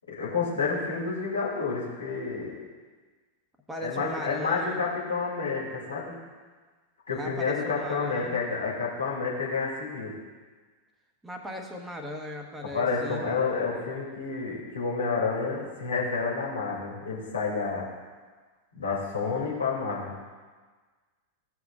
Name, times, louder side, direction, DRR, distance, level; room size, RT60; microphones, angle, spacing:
voice 1, 0.1-2.6 3.8-6.1 7.1-10.1 12.7-17.9 18.7-20.1, left 4 dB, 75° left, -5 dB, 2.7 m, -29 dB
voice 2, 3.7-4.8 7.1-8.4 11.2-13.3, equal, 5° right, 2 dB, 1.2 m, -38 dB
16.0 x 6.0 x 2.5 m, 1.4 s
figure-of-eight pair, 90°, 0 cm